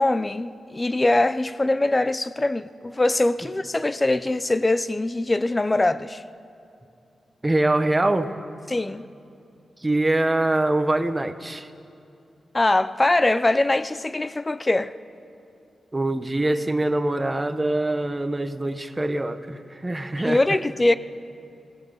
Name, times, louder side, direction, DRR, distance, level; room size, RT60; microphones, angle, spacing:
voice 1, 0.0-6.2 8.7-9.0 12.5-14.9 20.2-21.0, left 2 dB, 20° left, 0.6 m, -22 dB
voice 2, 7.4-8.4 9.8-11.7 15.9-20.6, right 2 dB, 15° right, 1.1 m, -24 dB
26.0 x 19.0 x 7.1 m
wide cardioid pair, 130°, 0 cm